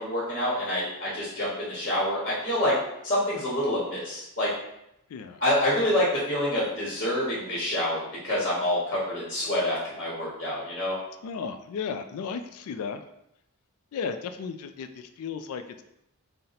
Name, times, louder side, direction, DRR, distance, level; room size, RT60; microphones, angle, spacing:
voice 1, 0.0-2.8 3.0-4.5 5.4-11.0, left 1 dB, 35° left, -6 dB, 1.0 m, -27 dB
voice 2, 5.1-5.4 11.2-13.0 13.9-15.8, left 6 dB, 75° left, 9 dB, 0.3 m, -34 dB
4.1 x 2.1 x 3.9 m, 0.82 s
head